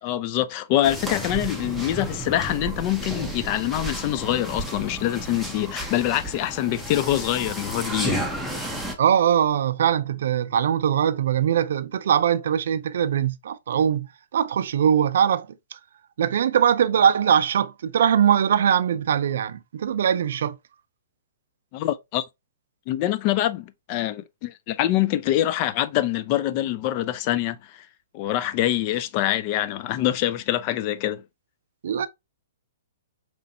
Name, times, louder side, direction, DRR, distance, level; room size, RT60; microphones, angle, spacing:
voice 1, 0.0-8.3 21.7-22.2 22.9-27.9 28.1-31.2, left 13 dB, 40° left, 0.4 m, -25 dB
sound 1, 0.8-8.9, right 1 dB, 5° left, 0.8 m, -32 dB
voice 2, 9.0-15.8 16.2-20.6 31.8-32.1, right 8 dB, 65° right, 0.4 m, -21 dB
5.2 x 3.1 x 2.6 m
hypercardioid pair, 130°, 0 cm